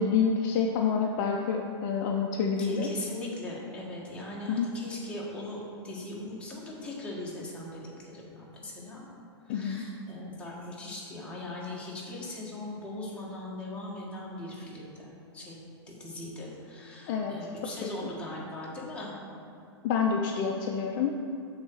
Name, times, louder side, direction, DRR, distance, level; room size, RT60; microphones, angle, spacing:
voice 1, 0.0-2.9 4.5-4.7 9.5-9.8 17.1-17.5 17.8-17.9 19.8-21.1, left 6 dB, 45° left, 2 dB, 0.6 m, -28 dB
voice 2, 2.6-9.1 9.5-15.6 15.9-19.2, left 2 dB, 10° left, -6 dB, 1.7 m, -40 dB
7.0 x 4.0 x 6.3 m, 2.4 s
hypercardioid pair, 120°, 14 cm